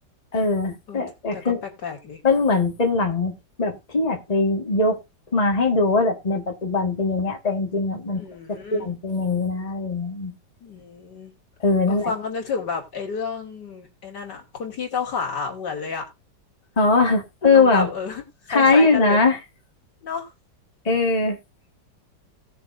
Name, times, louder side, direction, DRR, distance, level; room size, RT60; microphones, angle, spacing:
voice 1, 0.3-1.6 2.2-5.0 5.3-10.3 11.6-12.1 16.8-17.9 18.5-19.4 20.9-21.4, left 3 dB, 20° left, 1.8 m, -21 dB
voice 2, 1.3-2.2 8.1-8.9 10.6-11.3 11.9-16.0 17.4-19.2 20.0-20.3, left 5 dB, 65° left, 3.4 m, -31 dB
18.0 x 6.9 x 2.6 m
omnidirectional pair, 2.0 m